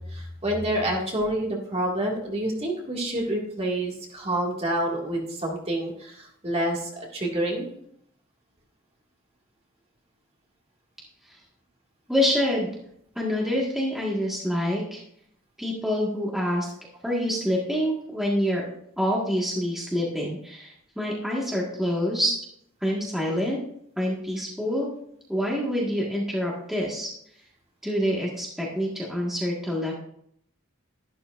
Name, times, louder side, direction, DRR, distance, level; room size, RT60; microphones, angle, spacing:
voice 1, 0.0-7.7 14.5-14.6, right 1 dB, 30° right, -1 dB, 2.0 m, -28 dB
voice 2, 12.1-12.7 13.1-15.0 15.6-16.7 17.0-18.6 19.0-22.3 22.8-23.6 24.0-24.9 25.3-27.1 27.8-29.9, equal, ahead, -4 dB, 1.6 m, -26 dB
12.0 x 11.5 x 2.5 m, 0.70 s
head